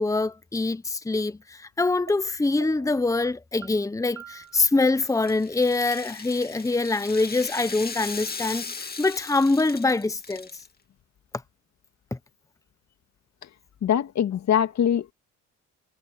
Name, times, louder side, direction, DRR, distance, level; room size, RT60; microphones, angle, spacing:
voice 1, 0.0-10.5, left 3 dB, 10° left, 1.0 m, -24 dB
sound 1, 2.1-2.2 2.6-3.0 3.6-3.7 4.2-4.6 5.3-5.4 5.9-6.5, right 9 dB, 65° right, 6.3 m, -45 dB
Rattle (instrument), 4.4-10.7, left 5 dB, 30° left, 2.3 m, -38 dB
voice 2, 13.8-15.1, left 9 dB, 65° left, 2.2 m, -23 dB
cardioid pair, 90°, 30 cm